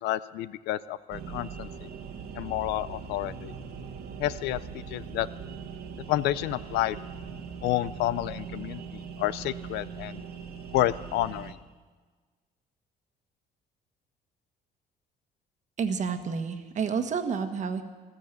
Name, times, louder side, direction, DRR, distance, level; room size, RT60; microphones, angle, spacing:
voice 1, 0.0-1.7 2.3-3.5 4.2-4.6 4.9-5.3 6.1-7.0 7.6-10.2 10.7-11.5, left 14 dB, 85° left, 17 dB, 0.5 m, -29 dB
sound 1, 1.1-11.5, right 6 dB, 70° right, 1.4 m, -41 dB
voice 2, 15.8-17.8, right 6 dB, 45° right, 7 dB, 1.4 m, -29 dB
15.0 x 13.5 x 6.7 m, 1.4 s
cardioid pair, 110°, 17 cm